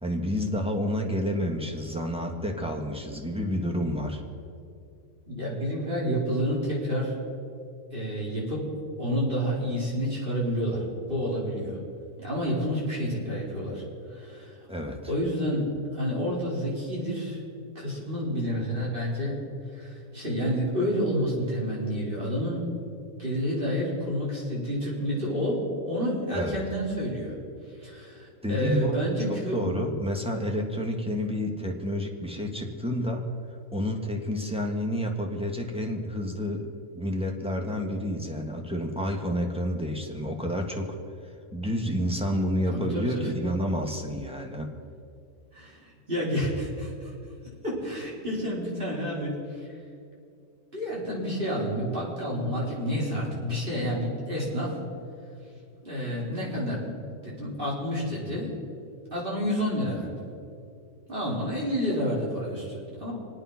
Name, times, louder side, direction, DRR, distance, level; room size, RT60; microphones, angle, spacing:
voice 1, 0.0-4.2 14.7-15.1 26.3-26.6 28.4-29.0 29.3-33.3 33.7-36.7 36.9-40.9 41.5-44.7, equal, 5° right, 1 dB, 1.6 m, -29 dB
voice 2, 5.3-7.2 7.9-8.7 9.0-11.8 12.2-13.8 14.1-14.6 15.1-15.6 15.9-17.4 17.7-19.4 19.7-22.7 23.2-27.4 27.8-29.6 42.7-43.3 45.5-47.1 47.6-49.7 50.7-54.8 55.8-58.5 59.1-60.2 61.1-63.1, equal, 35° right, -6 dB, 5.0 m, -29 dB
27.0 x 9.0 x 5.9 m, 2.4 s
omnidirectional pair, 1.6 m